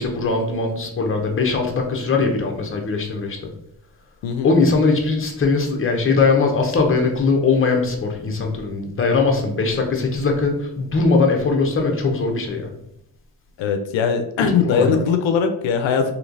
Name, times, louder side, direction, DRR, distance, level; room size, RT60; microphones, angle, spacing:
voice 1, 0.0-3.5 4.4-12.7 14.6-15.0, left 4 dB, 30° left, 1 dB, 0.9 m, -20 dB
voice 2, 13.6-16.1, left 6 dB, 90° left, 7 dB, 0.6 m, -20 dB
3.1 x 2.9 x 3.9 m, 0.76 s
cardioid pair, 95°, 45 cm